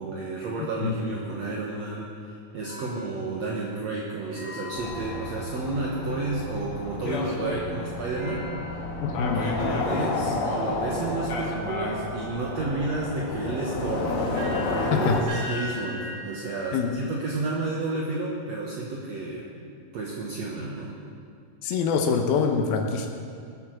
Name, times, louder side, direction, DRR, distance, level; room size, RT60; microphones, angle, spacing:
voice 1, 0.0-8.9 9.4-19.5 19.9-20.9, right 3 dB, 60° right, -3 dB, 2.1 m, -31 dB
sound 1, 2.6-6.1 8.2-9.7 10.4-10.5 11.4-18.2, left 1 dB, 80° right, 6.7 m, -42 dB
sound 2, 4.8-15.2, left 3 dB, 55° left, 1.7 m, -31 dB
voice 2, 9.0-9.5 14.9-15.2 16.7-16.9 21.6-23.1, left 6 dB, 80° left, 3 dB, 2.8 m, -24 dB
20.0 x 8.4 x 6.3 m, 2.3 s
omnidirectional pair, 4.2 m